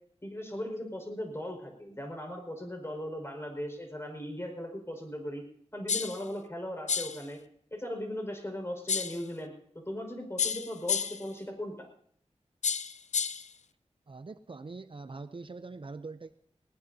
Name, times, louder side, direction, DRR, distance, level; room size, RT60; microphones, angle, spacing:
voice 1, 0.2-5.4 5.7-7.4 7.7-11.9, left 1 dB, 20° left, 2 dB, 5.2 m, -38 dB
sound 1, 5.9-6.2 6.9-7.2 8.9-9.2 10.4-11.3 12.6-13.5, left 6 dB, 85° left, 0.5 m, -31 dB
voice 2, 14.1-16.3, right 3 dB, 50° right, 11 dB, 0.6 m, -43 dB
20.0 x 19.0 x 2.8 m, 0.63 s
wide cardioid pair, 70°, 12 cm